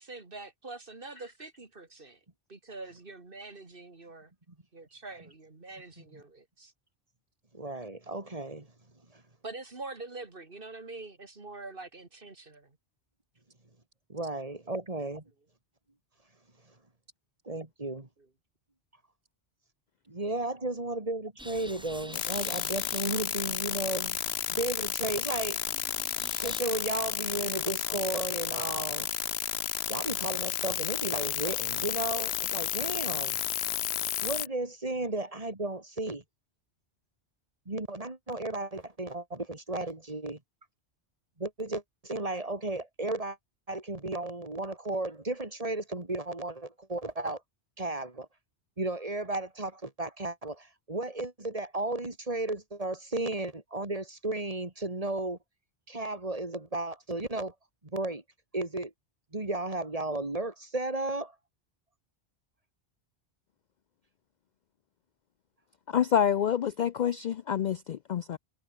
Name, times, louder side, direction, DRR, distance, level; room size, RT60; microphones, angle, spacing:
voice 1, 0.0-2.2 2.5-4.3 4.7-6.7 9.4-12.8 18.2-18.3, right 3 dB, 55° right, 2.6 m, -45 dB
voice 2, 7.5-8.7 9.1-9.2 14.1-15.2 17.4-18.1 20.1-24.2 24.5-25.6 26.4-29.1 29.7-33.4 34.2-36.2 37.7-40.4 41.4-43.4 43.7-47.4 47.8-48.3 48.8-55.4 55.9-57.5 57.8-58.2 58.5-58.9 59.3-61.3, right 2 dB, 35° right, 2.8 m, -34 dB
sound 1, 21.4-26.6, equal, 5° right, 5.6 m, -50 dB
sound 2, 22.1-34.5, left 11 dB, 75° left, 0.9 m, -32 dB
voice 3, 65.9-68.4, left 9 dB, 55° left, 0.5 m, -27 dB
omnidirectional pair, 1.1 m